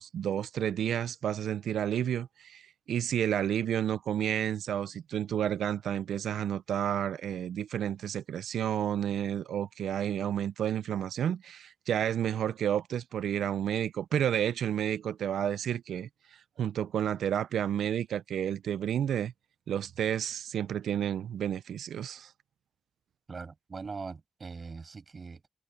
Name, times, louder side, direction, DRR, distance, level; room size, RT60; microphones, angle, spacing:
voice 1, 0.0-2.6 2.9-16.1 16.6-19.3 19.7-22.3, right 9 dB, 90° right, 0.5 m, -31 dB
voice 2, 23.3-25.4, right 4 dB, 55° right, 6.3 m, -41 dB
supercardioid pair, 40°, 0 cm